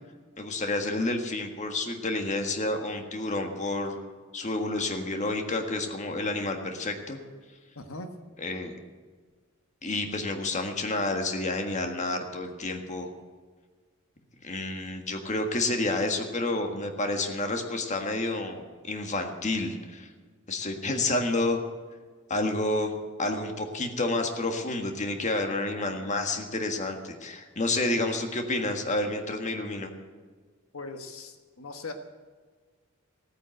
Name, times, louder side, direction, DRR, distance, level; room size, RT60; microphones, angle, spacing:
voice 1, 0.4-4.0 4.3-7.2 8.4-8.7 9.8-13.1 14.4-20.1 20.5-21.6 22.3-22.9 23.2-29.9, left 2 dB, 35° left, 5 dB, 1.6 m, -29 dB
voice 2, 7.7-8.1 30.7-31.9, left 3 dB, 80° left, 6 dB, 1.3 m, -40 dB
16.5 x 9.4 x 7.8 m, 1.5 s
head